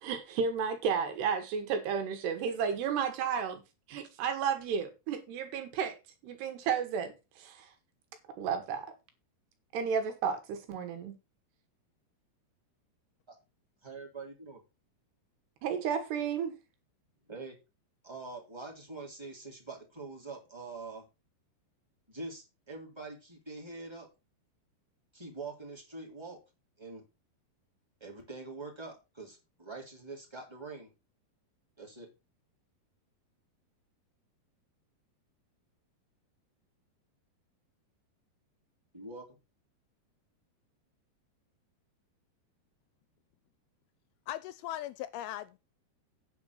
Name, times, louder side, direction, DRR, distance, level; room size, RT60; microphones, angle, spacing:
voice 1, 0.0-3.6 3.9-6.0 6.2-7.7 8.4-8.9 9.7-11.1 15.6-16.6, right 7 dB, 80° right, 3.8 m, -32 dB
voice 2, 13.8-14.6 17.3-17.6 18.0-21.0 22.1-24.1 25.1-26.4 26.8-27.0 28.0-30.9 31.8-32.1 38.9-39.4, right 3 dB, 10° right, 2.5 m, -44 dB
voice 3, 44.3-45.6, left 14 dB, 80° left, 2.4 m, -39 dB
9.5 x 5.3 x 6.5 m
omnidirectional pair, 4.7 m